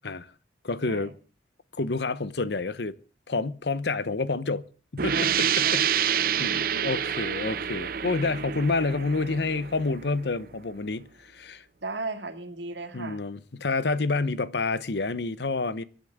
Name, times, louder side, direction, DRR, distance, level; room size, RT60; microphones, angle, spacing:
voice 1, 0.6-1.1 1.7-3.0 3.3-4.6 4.9-11.6 12.9-15.8, left 3 dB, 65° left, 0.9 m, -29 dB
sound 1, 5.0-10.4, right 8 dB, 50° right, 0.6 m, -28 dB
voice 2, 5.1-6.8 11.8-13.2, right 3 dB, 80° right, 2.1 m, -37 dB
25.0 x 11.0 x 3.6 m
head